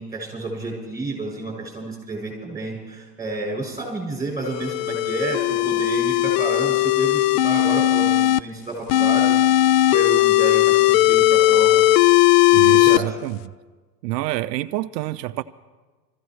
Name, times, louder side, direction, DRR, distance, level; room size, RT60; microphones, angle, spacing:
voice 1, 0.0-9.4 9.9-11.8 12.5-13.2, right 2 dB, 5° right, 0 dB, 6.9 m, -30 dB
sound 1, 4.5-8.4 8.9-13.0, left 15 dB, 55° left, 0.5 m, -17 dB
voice 2, 12.5-13.4 14.0-15.4, right 16 dB, 80° right, 11 dB, 0.6 m, -27 dB
27.0 x 15.0 x 3.2 m, 1.3 s
hypercardioid pair, 110°, 49 cm